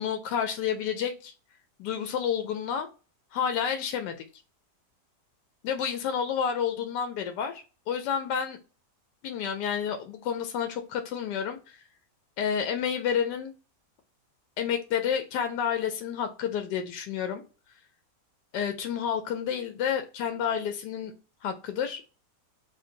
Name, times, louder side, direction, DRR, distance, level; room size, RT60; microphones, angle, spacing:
voice 1, 0.0-1.3 1.8-2.9 3.3-4.2 5.6-8.6 9.2-11.8 12.4-13.5 14.6-17.4 18.5-21.1 21.4-22.0, left 8 dB, 85° left, 1.2 m, -30 dB
3.2 x 2.6 x 3.8 m
omnidirectional pair, 1.8 m